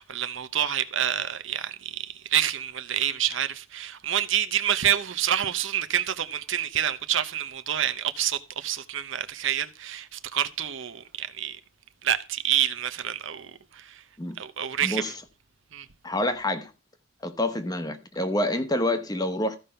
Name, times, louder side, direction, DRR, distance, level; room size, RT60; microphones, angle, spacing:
voice 1, 0.0-11.6 12.0-14.0 14.4-15.1 15.7-15.9, right 10 dB, 65° right, 0.8 m, -28 dB
voice 2, 14.8-15.1 16.0-16.7 17.2-19.6, left 1 dB, 20° left, 1.1 m, -27 dB
14.5 x 5.3 x 5.7 m
head